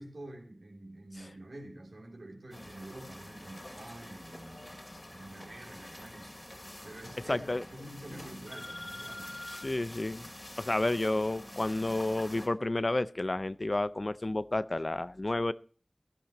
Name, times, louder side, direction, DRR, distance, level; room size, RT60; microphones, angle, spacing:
voice 1, 0.0-6.3 6.8-9.4, right 1 dB, 80° right, 1 dB, 3.1 m, -47 dB
sound 1, 2.5-12.5, left 1 dB, 30° left, 2.4 m, -46 dB
voice 2, 7.3-7.6 9.5-10.3 10.6-15.5, left 2 dB, 50° left, 16 dB, 0.4 m, -31 dB
16.0 x 11.5 x 3.0 m, 0.42 s
wide cardioid pair, 50°, 0 cm